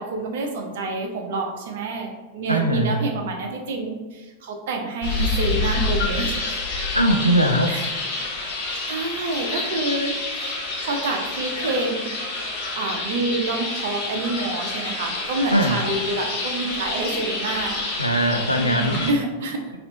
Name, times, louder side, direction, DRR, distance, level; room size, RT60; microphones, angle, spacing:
voice 1, 0.0-6.3 7.7-7.9 8.9-10.6 10.8-12.1 12.7-17.8 18.6-19.7, right 2 dB, 55° right, 3 dB, 0.7 m, -27 dB
voice 2, 2.5-3.1 6.9-7.8 15.5-15.8 18.0-19.1, right 1 dB, 90° left, 3 dB, 0.4 m, -20 dB
sound 1, 5.0-19.1, left 2 dB, 45° left, 1.1 m, -28 dB
4.2 x 2.6 x 4.0 m, 1.2 s
figure-of-eight pair, 90°, 0 cm